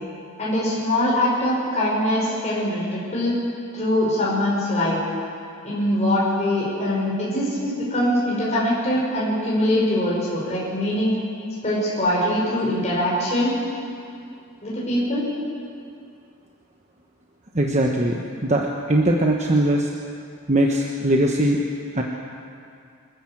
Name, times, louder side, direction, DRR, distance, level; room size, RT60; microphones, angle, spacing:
voice 1, 0.4-3.4 3.7-5.0 5.6-11.1 11.6-13.5 14.6-15.2, left 1 dB, 30° left, -6 dB, 5.6 m, -22 dB
voice 2, 17.5-19.9 20.5-21.6 21.9-22.0, right 1 dB, 30° right, 0 dB, 1.2 m, -20 dB
25.5 x 14.0 x 7.4 m, 2.5 s
head